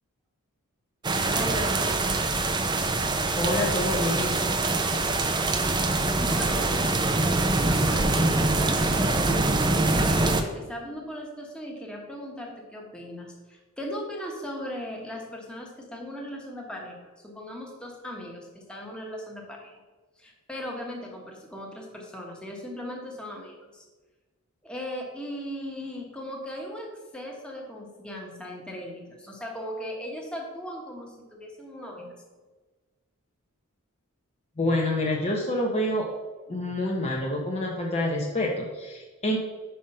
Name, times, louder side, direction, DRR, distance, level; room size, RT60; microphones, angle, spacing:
sound 1, 1.0-10.4, right 2 dB, 20° right, 0.4 m, -24 dB
voice 1, 1.3-2.3 6.1-9.3 9.9-19.8 20.2-23.9 24.6-32.1, equal, 5° left, -1 dB, 1.1 m, -38 dB
voice 2, 3.4-4.6 34.6-36.1 36.5-39.4, left 1 dB, 30° left, -1 dB, 0.7 m, -27 dB
5.5 x 5.0 x 5.3 m, 1.3 s
head